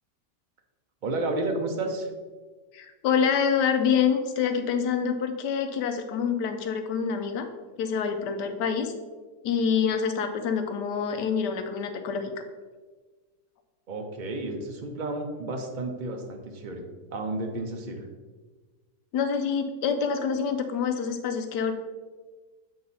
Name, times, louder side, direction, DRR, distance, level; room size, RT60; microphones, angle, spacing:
voice 1, 1.0-2.1 13.9-16.9 17.1-18.1, right 2 dB, 60° right, 3 dB, 0.4 m, -31 dB
voice 2, 2.7-7.5 7.8-8.9 9.4-12.3 19.1-21.7, left 6 dB, 80° left, 7 dB, 1.3 m, -26 dB
7.7 x 3.9 x 4.0 m, 1.3 s
omnidirectional pair, 1.9 m